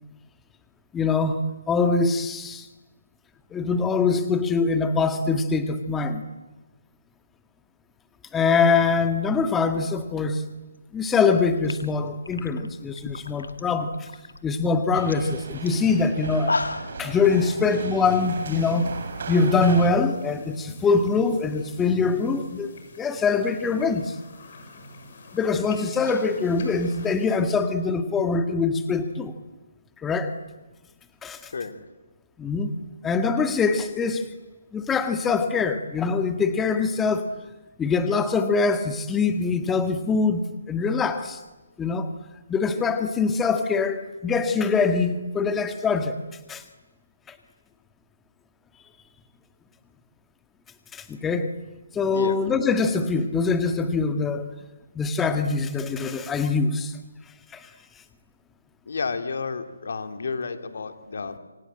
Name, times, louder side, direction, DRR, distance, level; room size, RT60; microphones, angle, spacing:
voice 1, 0.9-1.4 1.7-2.7 3.5-6.2 8.3-10.5 10.9-14.1 14.4-16.6 17.0-18.9 19.3-24.2 25.3-29.3 30.0-30.3 31.2-31.5 32.4-32.7 33.0-34.3 34.7-37.3 37.8-41.4 41.8-42.1 42.5-46.2 46.5-46.6 47.3-47.4 50.9-51.5 51.9-54.5 54.9-56.9 57.5-57.7, left 4 dB, 10° left, 8 dB, 1.7 m, -23 dB
sound 1, 11.3-11.4 11.6-13.6 13.9-14.4 14.7-14.8 15.1-15.3 15.7-15.8 16.2-17.0, left 3 dB, 85° left, 2.1 m, -32 dB
sound 2, 14.9-19.9, right 5 dB, 55° right, 4.0 m, -36 dB
sound 3, 18.2-27.4, left 2 dB, 45° left, 7.2 m, -45 dB
voice 2, 58.9-61.4, left 4 dB, 65° left, 8 dB, 3.0 m, -31 dB
27.0 x 24.5 x 9.0 m, 1.1 s
figure-of-eight pair, 150°, 0 cm